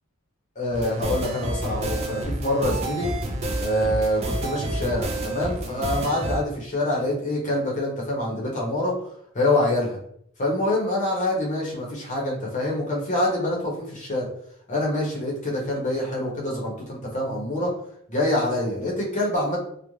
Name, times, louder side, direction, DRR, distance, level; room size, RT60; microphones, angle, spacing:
voice 1, 0.6-3.1 3.6-8.9 9.3-10.0 10.4-14.3 14.7-17.7 18.1-19.6, left 1 dB, 35° left, -3 dB, 0.7 m, -25 dB
sound 1, 0.7-6.4, right 1 dB, 30° right, 0.3 m, -29 dB
2.4 x 2.1 x 3.0 m, 0.69 s
head